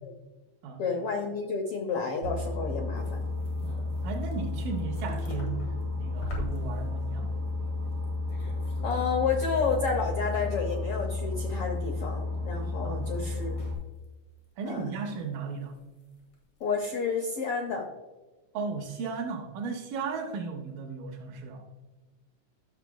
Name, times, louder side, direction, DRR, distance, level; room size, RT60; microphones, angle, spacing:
voice 1, 0.8-3.2 8.8-13.6 14.7-14.8 16.6-17.8, left 5 dB, 90° left, 1 dB, 1.2 m, -30 dB
Boat Water vehicle, 2.2-13.7, left 2 dB, 55° right, 1.2 m, -32 dB
sound 1, 2.9-9.0 9.2-10.8 11.1-11.2 11.6-12.1 12.3-14.1 14.4-15.1 15.5-16.4 16.6-17.1, left 1 dB, 65° left, 3.2 m, -46 dB
voice 2, 3.6-7.3 12.8-13.4 14.6-15.7 18.5-21.6, right 5 dB, 90° right, 0 dB, 2.4 m, -36 dB
12.5 x 6.7 x 2.2 m, 1.2 s
omnidirectional pair, 3.8 m